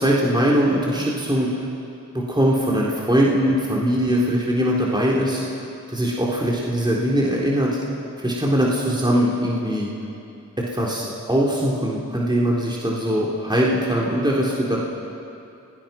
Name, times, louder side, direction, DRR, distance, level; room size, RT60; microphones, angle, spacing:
voice 1, 0.0-1.5 2.1-5.4 5.9-7.8 8.2-9.9 10.6-14.8, equal, 15° right, -4 dB, 3.8 m, -21 dB
29.0 x 19.5 x 6.0 m, 2.6 s
cardioid pair, 60°, 31 cm